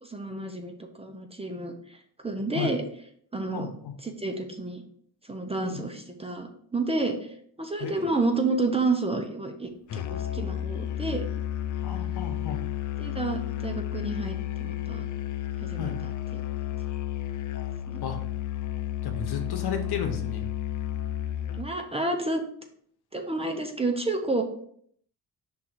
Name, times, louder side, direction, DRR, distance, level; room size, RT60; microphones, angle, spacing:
voice 1, 0.0-2.8 3.3-3.7 4.0-4.8 5.2-11.2 13.0-15.0 15.6-16.4 17.9-18.0 21.6-22.4 23.1-24.4, right 3 dB, 15° right, 4 dB, 0.7 m, -30 dB
voice 2, 3.5-3.9 5.6-5.8 7.8-8.3 11.8-12.6 15.8-16.0 18.0-18.2 19.0-20.4, left 7 dB, 70° left, 5 dB, 1.1 m, -33 dB
Musical instrument, 9.9-21.8, left 11 dB, 50° left, 0.5 m, -32 dB
5.6 x 3.7 x 4.5 m, 0.64 s
cardioid pair, 130°, 40 cm